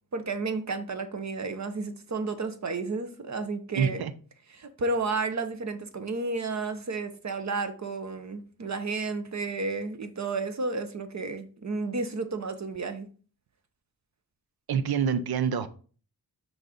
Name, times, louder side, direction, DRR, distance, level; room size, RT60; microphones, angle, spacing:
voice 1, 0.1-4.0 4.5-13.1, right 3 dB, 45° right, 1.0 m, -32 dB
voice 2, 3.7-4.1 14.7-15.7, right 7 dB, 75° right, 0.7 m, -26 dB
6.4 x 4.1 x 5.0 m
wide cardioid pair, 90°, 37 cm